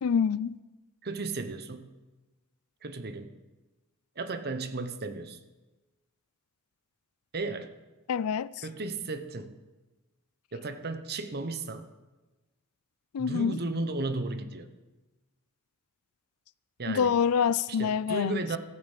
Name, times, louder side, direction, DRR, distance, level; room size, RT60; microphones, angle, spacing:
voice 1, 0.0-0.6 8.1-8.5 13.1-13.6 16.9-18.4, left 7 dB, 80° left, 0.4 m, -26 dB
voice 2, 1.0-1.9 2.8-3.3 4.2-5.4 7.3-7.7 8.6-9.6 10.5-11.9 13.2-14.7 16.8-17.1 17.7-18.6, right 3 dB, 45° right, 1.0 m, -34 dB
14.5 x 9.0 x 7.5 m
head